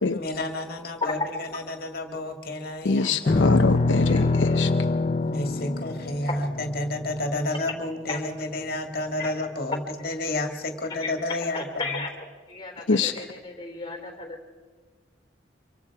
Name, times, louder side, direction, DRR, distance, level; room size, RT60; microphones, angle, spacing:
voice 1, 0.1-3.4 5.2-11.9, left 1 dB, 55° left, 5 dB, 2.1 m, -31 dB
voice 2, 2.8-4.7 12.9-13.3, left 3 dB, 85° left, 7 dB, 0.7 m, -24 dB
sound 1, 3.3-7.7, left 3 dB, 40° left, 0.5 m, -24 dB
voice 3, 11.0-12.1 12.5-14.4, left 3 dB, 20° left, 3 dB, 3.6 m, -35 dB
25.5 x 24.0 x 4.8 m, 1.3 s
head